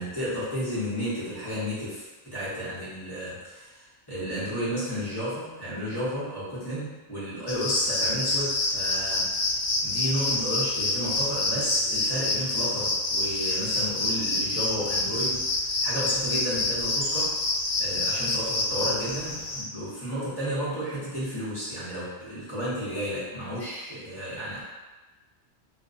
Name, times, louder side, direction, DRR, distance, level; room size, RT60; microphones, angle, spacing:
voice 1, 0.0-17.4 17.8-24.6, equal, 20° left, -11 dB, 0.9 m, -32 dB
sound 1, 7.5-19.6, left 2 dB, 70° left, 0.8 m, -27 dB
2.5 x 2.1 x 2.5 m, 1.2 s
omnidirectional pair, 1.2 m